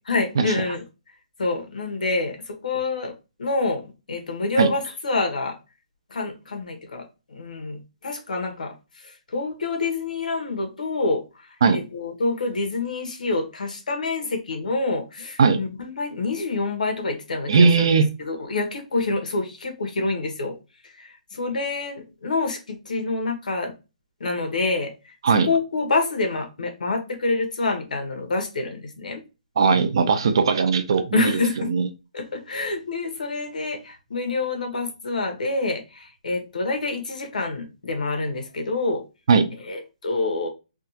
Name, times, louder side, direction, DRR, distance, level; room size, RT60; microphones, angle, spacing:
voice 1, 0.1-0.8 1.4-3.1 3.4-5.6 6.1-17.9 18.2-20.6 20.8-23.7 24.2-29.2 31.1-31.7 32.1-39.0 39.6-40.5, left 3 dB, 90° left, 1.1 m, -27 dB
voice 2, 17.5-18.1 25.2-25.5 29.6-31.3 31.7-31.9 39.3-39.5, right 5 dB, 40° right, 0.4 m, -18 dB
3.4 x 2.3 x 2.7 m
hypercardioid pair, 175°, 4 cm